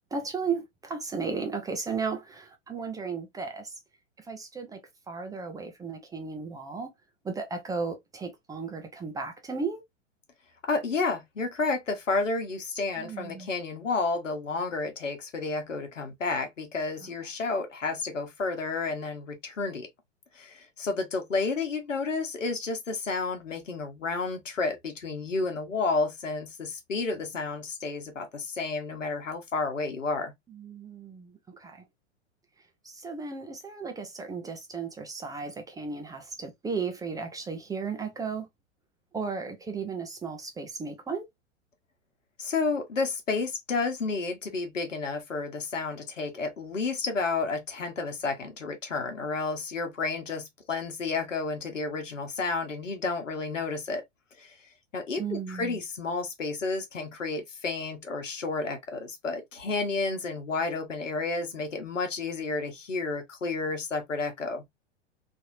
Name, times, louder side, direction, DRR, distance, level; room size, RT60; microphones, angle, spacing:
voice 1, 0.1-3.7 4.2-4.8 5.1-6.9 7.2-9.8 13.0-13.5 17.0-17.1 30.5-31.8 32.8-38.5 39.1-41.3 55.2-55.8, right 5 dB, 10° right, 0.5 m, -35 dB
voice 2, 10.7-19.9 20.3-30.3 42.4-54.0 54.4-54.5 54.9-64.6, left 3 dB, 85° left, 1.1 m, -31 dB
3.4 x 2.7 x 2.6 m
hypercardioid pair, 105°, 37 cm